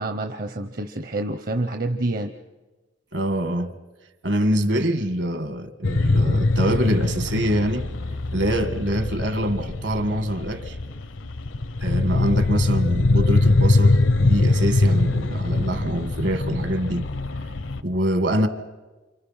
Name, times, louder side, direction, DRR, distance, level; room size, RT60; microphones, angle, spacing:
voice 1, 0.0-2.3, right 2 dB, 45° right, 0.8 m, -27 dB
voice 2, 3.1-3.8 4.2-7.9 8.3-10.8 11.8-17.1 17.8-18.5, right 1 dB, 60° right, 1.5 m, -24 dB
sound 1, 5.8-17.8, left 2 dB, 75° left, 0.8 m, -22 dB
29.0 x 26.5 x 5.7 m
head